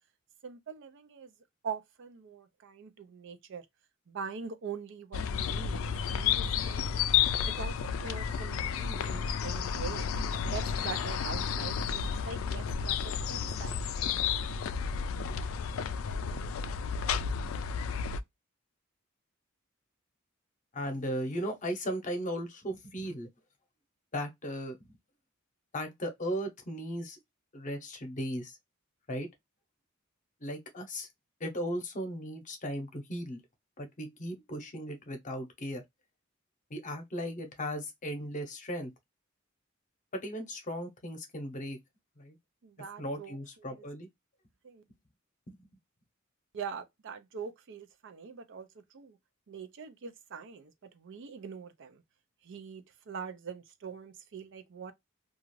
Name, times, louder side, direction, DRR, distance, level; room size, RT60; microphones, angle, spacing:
voice 1, 0.4-1.3 1.6-3.7 4.1-7.1 7.4-10.1 10.4-13.8 42.6-43.8 44.6-44.8 46.5-49.2 49.5-52.0 52.4-54.9, right 6 dB, 60° right, 0.5 m, -43 dB
sound 1, 5.1-18.2, left 7 dB, 70° left, 0.3 m, -31 dB
voice 2, 20.7-23.3 24.1-25.0 25.7-27.2 27.5-28.6 29.1-29.3 30.4-31.1 31.4-33.4 33.8-35.8 36.7-38.9 40.1-41.8 42.2-42.4 43.0-44.1 45.5-45.7, equal, 40° left, 0.8 m, -37 dB
2.4 x 2.3 x 3.0 m
head